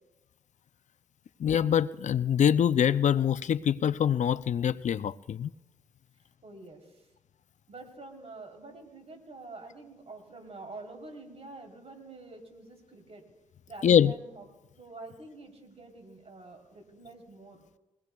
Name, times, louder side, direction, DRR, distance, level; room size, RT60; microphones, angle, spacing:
voice 1, 1.4-5.5 13.8-14.1, left 9 dB, 65° left, 16 dB, 0.4 m, -24 dB
voice 2, 6.4-6.8 7.7-13.2 13.7-14.5 14.8-17.6, right 3 dB, 55° right, 2 dB, 3.4 m, -47 dB
23.0 x 18.0 x 2.3 m, 0.99 s
cardioid pair, 50°, 13 cm